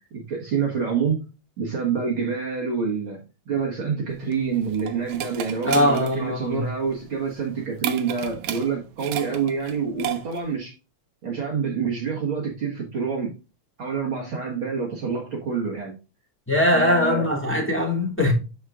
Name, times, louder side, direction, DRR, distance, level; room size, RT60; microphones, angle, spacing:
voice 1, 0.1-1.3 1.6-10.7 11.2-13.3 13.8-15.9 16.7-17.3, right 6 dB, 50° right, 2.1 m, -27 dB
sound 1, 4.1-10.6, right 11 dB, 70° right, 1.9 m, -34 dB
voice 2, 5.6-6.7 16.5-18.3, left 1 dB, 5° left, 2.0 m, -21 dB
12.5 x 4.3 x 2.4 m
omnidirectional pair, 3.3 m